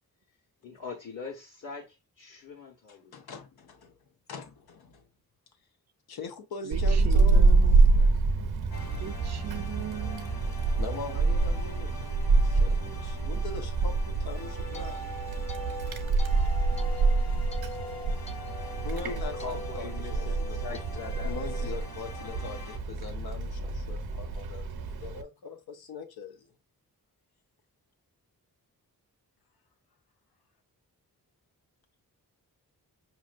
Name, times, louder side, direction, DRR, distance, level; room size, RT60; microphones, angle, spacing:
voice 1, 0.6-3.1 19.0-21.7, left 5 dB, 55° left, 1.4 m, -42 dB
voice 2, 2.9-4.0 4.3-5.1 6.1-7.5 10.8-15.0 17.9-18.2 18.8-26.5, left 4 dB, 85° left, 0.9 m, -42 dB
Wind, 6.7-25.2, right 3 dB, 85° right, 0.8 m, -26 dB
voice 3, 7.0-8.0 9.0-10.3, right 9 dB, 45° right, 0.5 m, -39 dB
sound 1, 8.7-22.8, left 2 dB, 70° left, 1.6 m, -47 dB
sound 2, 14.2-22.6, left 1 dB, 20° left, 0.5 m, -43 dB
5.3 x 3.0 x 2.5 m
wide cardioid pair, 110°, 37 cm